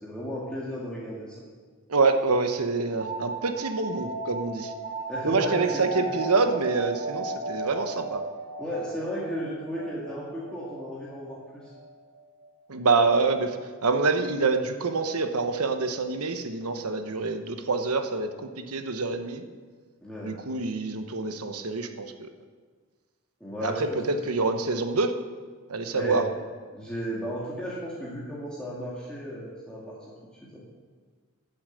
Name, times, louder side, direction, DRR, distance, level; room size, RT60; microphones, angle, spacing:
voice 1, 0.0-1.4 5.1-6.1 8.6-11.7 20.0-20.4 23.4-24.2 25.9-26.3 26.7-30.0 30.3-30.6, equal, 5° left, -7 dB, 2.0 m, -34 dB
voice 2, 1.9-4.7 5.2-8.2 12.7-18.3 18.6-19.4 20.2-22.3 23.6-25.1 25.7-26.2, right 3 dB, 75° right, 7 dB, 1.1 m, -26 dB
sound 1, 3.0-12.4, right 2 dB, 35° right, 3.3 m, -36 dB
13.5 x 7.1 x 7.8 m, 1.5 s
head